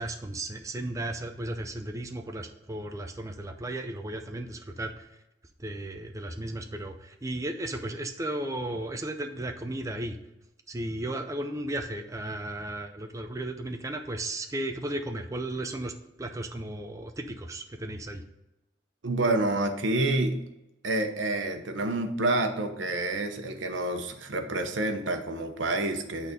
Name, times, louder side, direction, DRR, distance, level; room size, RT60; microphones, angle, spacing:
voice 1, 0.0-5.2 5.6-10.2 10.7-18.2, right 1 dB, 15° right, 5 dB, 0.5 m, -35 dB
voice 2, 19.0-20.4 20.8-26.3, right 2 dB, 80° right, 6 dB, 1.0 m, -28 dB
8.7 x 4.1 x 5.2 m, 0.94 s
head